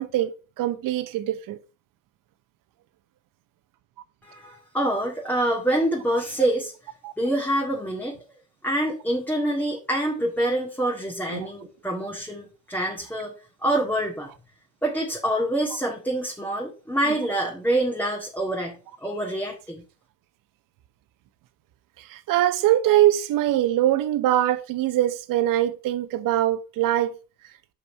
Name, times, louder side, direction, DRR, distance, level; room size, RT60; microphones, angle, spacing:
voice 1, 0.0-1.6 7.0-7.1 11.3-11.5 22.0-27.1, right 13 dB, 65° right, 1.0 m, -23 dB
voice 2, 4.2-6.7 7.2-8.2 8.6-13.3 13.6-14.3 14.8-19.8, right 1 dB, 5° left, 1.9 m, -26 dB
5.5 x 5.3 x 5.6 m
supercardioid pair, 80°, 35 cm